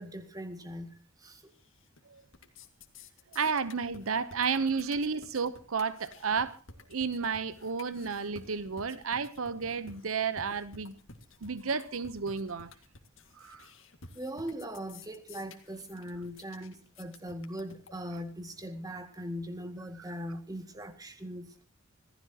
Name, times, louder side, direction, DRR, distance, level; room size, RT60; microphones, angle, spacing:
voice 1, 0.0-1.5 14.1-21.5, equal, 20° right, 2.0 m, -40 dB
sound 1, 1.5-2.0 2.3-18.3, left 3 dB, 65° left, 2.0 m, -53 dB
voice 2, 3.3-6.6 6.9-11.0 11.4-12.7 13.4-13.7, right 5 dB, 80° right, 0.8 m, -32 dB
26.0 x 15.5 x 2.9 m
head